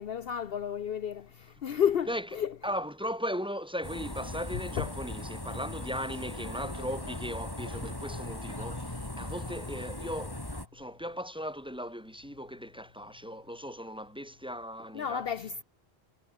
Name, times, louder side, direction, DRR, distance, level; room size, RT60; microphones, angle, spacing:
voice 1, 0.0-2.5 4.8-4.9 14.9-15.6, left 8 dB, 65° left, 1.0 m, -31 dB
voice 2, 2.6-15.2, equal, 5° right, 6.6 m, -37 dB
sound 1, 3.8-10.7, left 1 dB, 20° left, 2.5 m, -39 dB
omnidirectional pair, 1.1 m